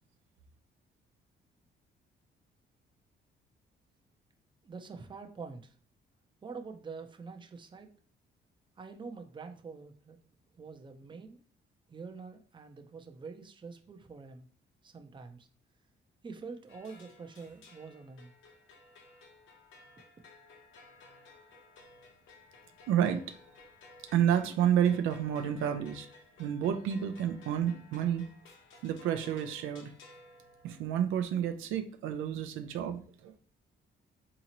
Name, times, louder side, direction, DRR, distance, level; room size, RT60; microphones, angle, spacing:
voice 1, 4.6-5.8 6.4-7.9 8.8-10.2 10.5-11.4 11.9-14.5 14.8-15.5 16.2-18.3, right 4 dB, 25° right, 0.5 m, -46 dB
sound 1, 16.7-31.1, left 2 dB, 85° left, 0.9 m, -56 dB
voice 2, 22.9-23.2 24.1-26.1 26.4-28.2 28.8-29.9 30.6-33.4, right 9 dB, 85° right, 0.5 m, -30 dB
3.8 x 2.9 x 2.9 m
cardioid pair, 90°, 20 cm